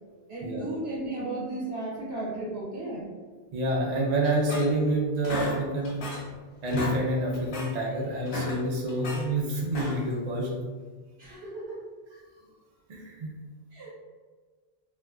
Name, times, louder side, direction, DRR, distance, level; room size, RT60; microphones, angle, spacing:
voice 1, 0.3-3.1 11.2-11.8 13.7-13.9, right 2 dB, 80° right, -5 dB, 1.2 m, -34 dB
voice 2, 3.5-6.0 6.6-10.5 12.3-12.4 12.9-13.3, right 1 dB, 50° right, -3 dB, 0.6 m, -28 dB
sound 1, 4.2-4.9 5.2-6.3 6.6-7.0 7.3-7.7 8.1-9.2 9.7-10.2, left 1 dB, 85° left, 1.0 m, -34 dB
4.2 x 2.2 x 2.3 m, 1.4 s
omnidirectional pair, 1.0 m